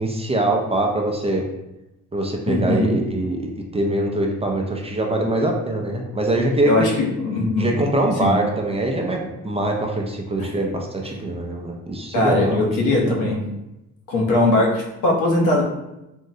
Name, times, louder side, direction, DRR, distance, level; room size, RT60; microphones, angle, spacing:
voice 1, 0.0-1.5 2.1-6.7 7.6-13.1, right 1 dB, 20° right, 1 dB, 0.4 m, -23 dB
voice 2, 2.5-2.9 6.6-7.7 8.2-8.3 10.4-10.5 12.1-13.4 14.1-15.6, left 2 dB, 80° left, -1 dB, 0.8 m, -20 dB
3.6 x 2.0 x 2.7 m, 0.93 s
cardioid pair, 90°, 30 cm